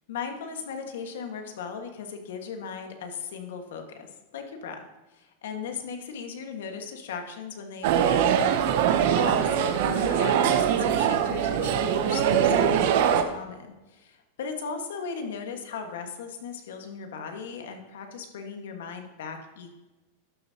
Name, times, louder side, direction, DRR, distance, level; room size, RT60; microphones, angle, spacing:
voice 1, 0.1-4.8 5.1-8.3 9.2-19.7, left 6 dB, 80° left, 4 dB, 1.5 m, -37 dB
sound 1, 7.8-13.2, right 8 dB, 50° right, 0.7 m, -22 dB
12.0 x 7.3 x 2.8 m, 1.1 s
supercardioid pair, 170°, 0 cm